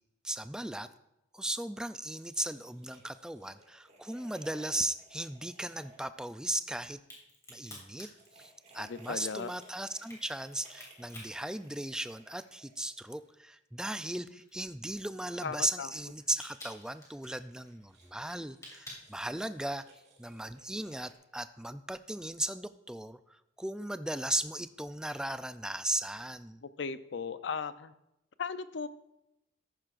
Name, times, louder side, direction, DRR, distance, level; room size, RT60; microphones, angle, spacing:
voice 1, 0.2-0.9 1.3-7.0 7.5-8.1 8.4-19.9 20.2-26.6, right 1 dB, 5° right, 12 dB, 0.3 m, -37 dB
sound 1, 1.9-6.9 8.0-13.2 16.4-21.1, right 2 dB, 40° right, 2.1 m, -60 dB
Crack, 6.9-12.5 12.8-19.8, left 1 dB, 15° left, 3.0 m, -52 dB
voice 2, 8.8-9.5 15.4-15.9 26.6-27.9 28.4-28.9, left 5 dB, 65° left, 13 dB, 0.5 m, -37 dB
13.5 x 10.5 x 2.5 m, 0.86 s
head